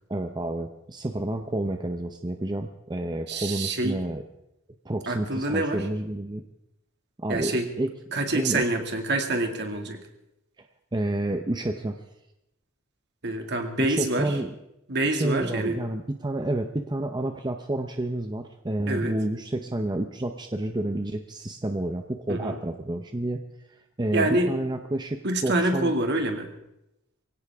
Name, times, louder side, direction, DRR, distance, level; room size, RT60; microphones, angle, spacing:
voice 1, 0.1-4.2 4.8-6.4 7.2-7.9 8.3-8.7 10.9-12.0 13.8-14.5 15.1-23.4 24.0-25.9, right 1 dB, 20° right, 6 dB, 0.7 m, -29 dB
voice 2, 3.3-4.0 5.1-5.9 7.3-7.7 8.1-10.0 13.2-14.4 14.9-15.8 18.9-19.1 22.3-22.6 24.1-24.5 25.2-26.5, right 2 dB, 55° right, 4 dB, 2.2 m, -26 dB
23.5 x 17.0 x 3.6 m, 0.87 s
head